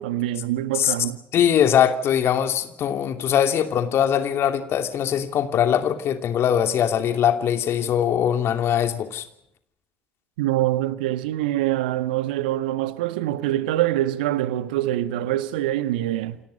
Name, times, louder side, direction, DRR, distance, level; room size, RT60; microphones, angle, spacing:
voice 1, 0.0-1.2 10.4-16.4, right 14 dB, 80° right, 1.4 m, -24 dB
voice 2, 1.3-9.3, left 9 dB, 60° left, 2.8 m, -21 dB
29.5 x 27.0 x 5.2 m
figure-of-eight pair, 45°, 5 cm